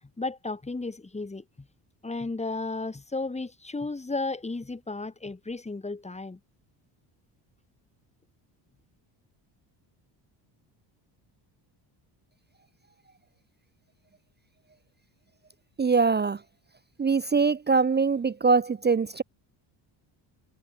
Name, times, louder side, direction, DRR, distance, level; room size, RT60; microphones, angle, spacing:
voice 1, 0.2-1.7 2.0-6.4, left 3 dB, 15° left, 2.1 m, -34 dB
voice 2, 15.8-16.4 17.0-19.2, right 4 dB, 20° right, 0.7 m, -23 dB
supercardioid pair, 85°, 50 cm